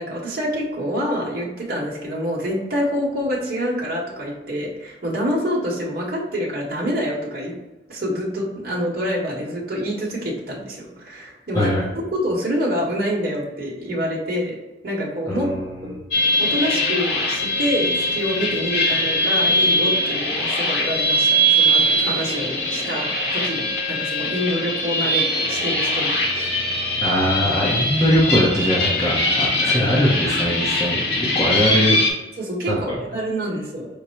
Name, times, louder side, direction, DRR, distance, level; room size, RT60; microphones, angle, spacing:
voice 1, 0.0-7.5 7.9-11.7 12.0-14.6 14.8-15.5 15.8-16.0 16.4-26.5 32.4-32.9 33.1-33.9, equal, 50° right, -4 dB, 0.9 m, -26 dB
voice 2, 11.5-11.9 15.3-15.7 27.0-32.0 32.7-32.9, equal, 15° left, -5 dB, 0.7 m, -21 dB
sound 1, 16.1-32.1, equal, 70° left, 1.0 m, -21 dB
5.2 x 2.0 x 4.4 m, 1.1 s
head